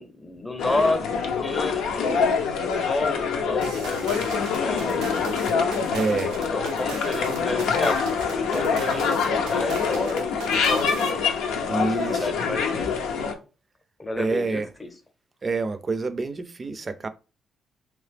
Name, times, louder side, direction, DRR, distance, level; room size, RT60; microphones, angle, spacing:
voice 1, 0.0-2.6 2.8-5.0 6.5-10.9 11.5-11.9 12.2-13.1 14.0-14.9, left 2 dB, 20° left, 0.8 m, -31 dB
sound 1, 0.6-13.3, left 5 dB, 85° left, 0.6 m, -25 dB
sound 2, 3.6-11.3, right 8 dB, 90° right, 0.5 m, -39 dB
voice 2, 5.9-6.4 11.7-12.4 14.2-14.7 15.4-17.1, right 3 dB, 35° right, 0.4 m, -27 dB
3.1 x 2.9 x 3.3 m
cardioid pair, 90°, 0 cm